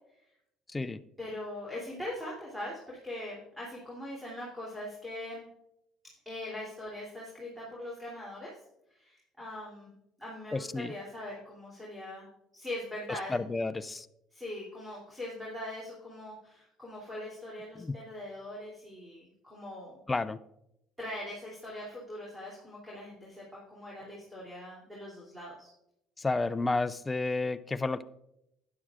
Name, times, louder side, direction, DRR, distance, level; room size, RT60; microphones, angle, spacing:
voice 1, 1.2-5.5 6.2-8.5 8.9-12.3 12.5-13.4 14.3-20.0 21.0-25.7, left 1 dB, 5° right, -5 dB, 2.9 m, -41 dB
voice 2, 10.5-10.9 13.3-14.1 17.8-17.9 20.1-20.4 26.2-28.0, left 3 dB, 15° left, 13 dB, 0.4 m, -31 dB
12.5 x 10.0 x 2.5 m, 0.83 s
cardioid pair, 115°, 0 cm